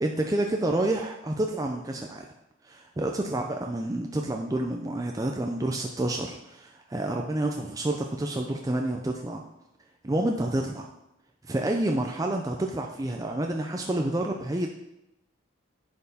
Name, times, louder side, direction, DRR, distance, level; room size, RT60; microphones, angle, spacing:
voice 1, 0.0-2.3 2.6-9.4 10.0-10.9 11.4-14.7, right 1 dB, 15° right, 2 dB, 0.4 m, -29 dB
10.5 x 4.5 x 3.5 m, 0.86 s
head